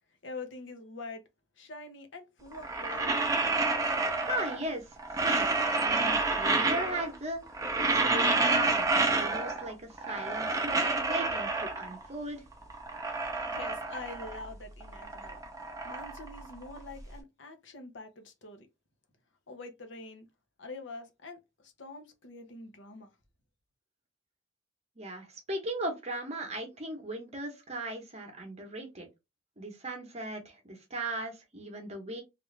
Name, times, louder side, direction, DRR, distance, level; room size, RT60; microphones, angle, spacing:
voice 1, 0.2-1.2 1.6-3.1 13.4-15.4 15.8-18.7 19.5-20.3 20.6-23.1, left 3 dB, 65° left, 0.7 m, -45 dB
sound 1, 2.5-4.7 5.0-7.2 7.5-9.7 10.0-12.1 12.5-14.5 14.8-17.0, right 3 dB, 15° right, 0.6 m, -29 dB
voice 2, 4.3-7.4 7.9-12.4 25.0-29.1 29.6-32.2, right 1 dB, 35° right, 0.9 m, -37 dB
3.3 x 2.5 x 3.2 m
head